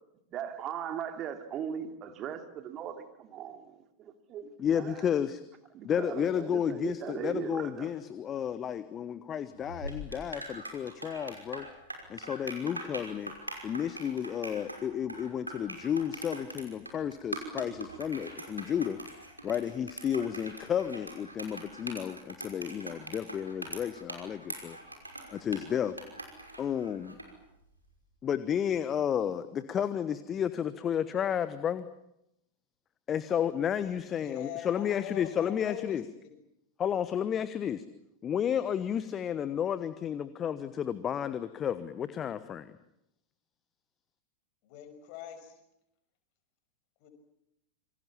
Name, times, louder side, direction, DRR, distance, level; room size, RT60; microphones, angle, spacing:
voice 1, 0.3-3.7 4.0-5.0 5.7-7.9, right 9 dB, 30° right, 2.7 m, -39 dB
voice 2, 4.6-5.4 5.8-11.7 12.1-13.3 13.6-19.0 19.4-24.8 25.3-25.9 26.6-27.1 28.2-31.9 33.1-36.0 36.8-37.8 38.2-42.7, left 9 dB, 25° left, 1.2 m, -32 dB
sound 1, 9.6-27.3, right 1 dB, 85° right, 5.7 m, -43 dB
voice 3, 34.2-36.3 44.6-45.6 47.0-47.1, left 10 dB, 45° left, 5.8 m, -43 dB
28.0 x 25.5 x 7.3 m
figure-of-eight pair, 90°, 0 cm